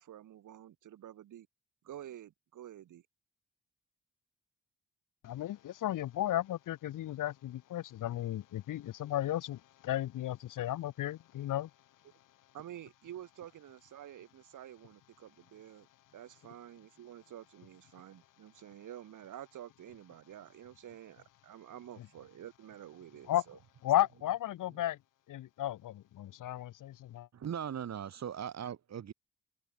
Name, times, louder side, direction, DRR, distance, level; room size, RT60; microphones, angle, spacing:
voice 1, 0.0-1.5 1.8-3.0 12.5-23.6, right 11 dB, 75° right, 2.9 m, -50 dB
voice 2, 5.2-11.7 23.3-23.4 23.8-25.0 25.3-27.3, left 13 dB, 75° left, 2.1 m, -34 dB
voice 3, 27.3-29.1, right 8 dB, 55° right, 1.5 m, -39 dB
hypercardioid pair, 45°, 32 cm